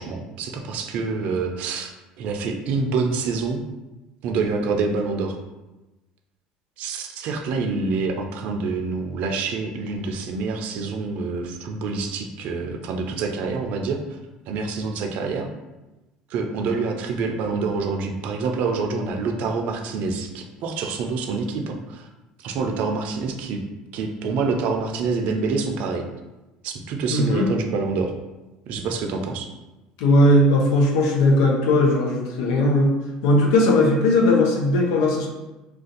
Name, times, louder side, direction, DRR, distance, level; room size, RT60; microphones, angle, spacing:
voice 1, 0.0-3.6 4.2-5.4 6.8-14.2 14.5-15.5 16.3-22.1 22.4-23.6 23.9-26.1 26.6-28.1 28.7-29.5, right 4 dB, 65° right, 3 dB, 0.5 m, -26 dB
voice 2, 27.1-27.5 30.0-32.9 33.2-35.3, left 1 dB, 85° left, 0 dB, 0.7 m, -18 dB
2.5 x 2.3 x 3.9 m, 1.1 s
supercardioid pair, 95°, 3 cm